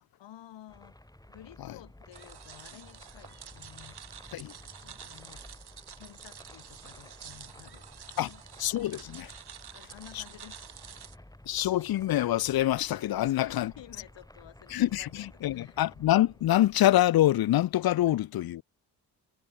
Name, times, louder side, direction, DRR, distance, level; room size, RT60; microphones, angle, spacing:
voice 1, 0.2-1.0 1.3-4.0 4.5-5.4 6.0-7.9 8.1-8.4 9.7-11.3 13.2-15.8 18.1-18.2, left 12 dB, 80° left, 2.3 m, -52 dB
sound 1, 0.7-18.0, left 1 dB, 10° left, 6.1 m, -53 dB
sound 2, 2.1-11.2, right 8 dB, 65° right, 2.9 m, -49 dB
voice 2, 8.6-9.3 11.5-13.7 14.7-18.6, left 14 dB, 60° left, 0.6 m, -25 dB
supercardioid pair, 55°, 43 cm